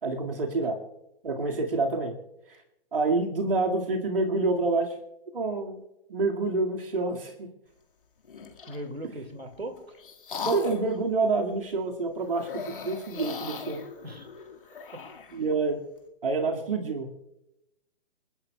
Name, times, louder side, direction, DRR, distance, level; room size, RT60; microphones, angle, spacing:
voice 1, 0.0-0.8 1.2-2.1 2.5-2.6 2.9-4.9 5.3-5.8 6.1-7.5 10.4-13.8 15.3-15.8 16.2-17.1, right 3 dB, 65° right, 1 dB, 2.2 m, -27 dB
sound 1, 8.2-8.9 9.5-11.0 12.3-15.4, left 6 dB, 60° left, 2.0 m, -39 dB
voice 2, 8.7-9.9 14.0-14.3 14.9-15.0 15.4-15.5, right 1 dB, 85° right, 6 dB, 2.3 m, -39 dB
28.5 x 11.5 x 2.3 m, 0.88 s
figure-of-eight pair, 125°, 30 cm